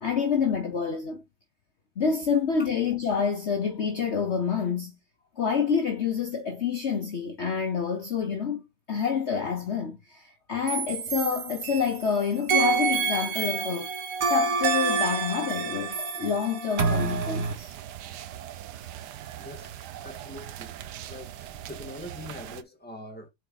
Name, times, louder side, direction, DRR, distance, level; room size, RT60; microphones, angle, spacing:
voice 1, 0.0-1.2 2.0-5.0 5.4-8.6 8.9-13.9 14.3-17.7, left 6 dB, 50° left, 1.1 m, -28 dB
sound 1, 10.7-12.1 12.5-17.5, right 4 dB, 60° right, 1.5 m, -27 dB
sound 2, 16.8-22.6, right 11 dB, 85° right, 1.3 m, -41 dB
voice 2, 19.4-19.7 20.0-20.8 21.1-23.3, left 1 dB, 5° left, 1.7 m, -43 dB
6.2 x 4.5 x 4.0 m
omnidirectional pair, 1.7 m